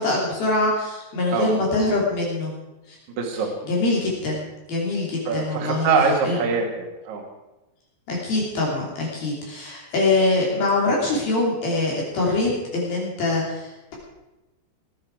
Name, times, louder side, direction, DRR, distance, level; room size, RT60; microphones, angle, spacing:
voice 1, 0.0-2.5 2.9-3.0 3.3-4.4 4.7-5.9 6.2-6.4 8.1-13.7, left 2 dB, 55° left, -4 dB, 4.7 m, -23 dB
voice 2, 3.2-3.5 5.3-7.2, right 4 dB, 50° right, 0 dB, 2.7 m, -23 dB
20.0 x 9.9 x 4.7 m, 1.0 s
omnidirectional pair, 5.4 m